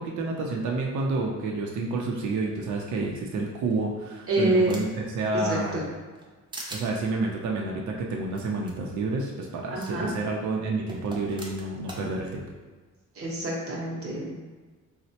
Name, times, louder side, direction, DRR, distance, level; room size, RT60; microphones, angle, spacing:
voice 1, 0.0-5.8 6.7-12.4, right 3 dB, 70° right, -1 dB, 0.5 m, -29 dB
sound 1, 3.7-5.1 5.5-6.3 6.5-6.9 8.3-8.4 8.7-8.8 9.8-9.9 10.9-12.0, right 1 dB, 15° right, 0.4 m, -41 dB
voice 2, 4.3-4.8 5.4-5.8 9.7-10.1 13.1-14.3, right 1 dB, 50° right, -4 dB, 0.8 m, -27 dB
4.1 x 2.1 x 2.8 m, 1.4 s
cardioid pair, 145°, 30 cm